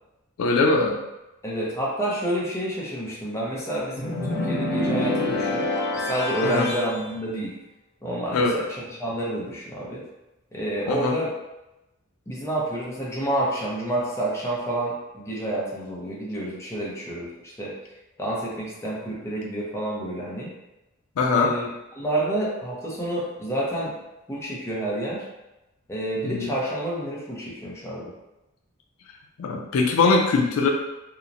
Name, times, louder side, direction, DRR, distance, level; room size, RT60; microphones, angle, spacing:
voice 1, 0.4-1.0 6.4-6.7 8.3-8.6 10.9-11.1 21.2-21.5 26.2-26.5 29.4-30.7, left 3 dB, 80° left, 1 dB, 0.4 m, -21 dB
voice 2, 1.4-5.6 6.0-7.5 8.0-10.0 10.5-11.3 12.3-17.7 18.2-20.5 21.3-21.7 21.9-23.9 24.3-25.2 25.9-28.1, right 1 dB, 15° left, -5 dB, 0.6 m, -29 dB
sound 1, 4.0-7.0, left 2 dB, 55° left, 0.7 m, -26 dB
2.8 x 2.0 x 2.5 m, 0.95 s
head